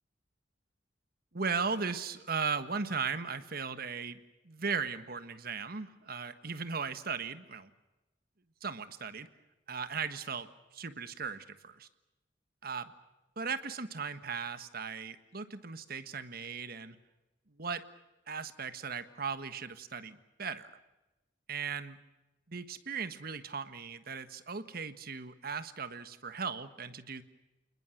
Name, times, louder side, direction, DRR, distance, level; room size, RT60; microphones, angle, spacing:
voice 1, 1.3-4.2 4.4-7.7 8.6-9.3 9.7-11.9 12.6-12.9 13.4-17.0 17.6-17.8 18.3-20.7 21.5-22.0 22.5-27.2, right 5 dB, 55° right, 11 dB, 1.5 m, -37 dB
29.0 x 20.5 x 6.5 m, 1.0 s
head